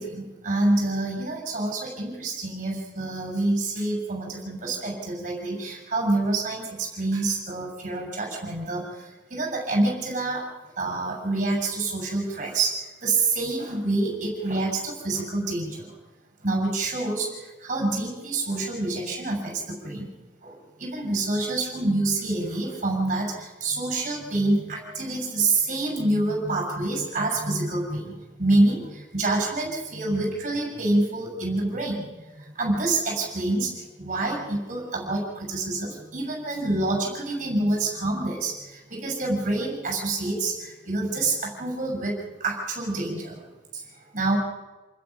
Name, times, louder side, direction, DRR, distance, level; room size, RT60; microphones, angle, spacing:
voice 1, 0.0-10.5 10.8-15.9 16.4-20.1 20.4-43.5 43.7-43.8 44.1-44.4, right 2 dB, 40° right, 0 dB, 6.8 m, -27 dB
28.0 x 21.0 x 6.0 m, 1.2 s
head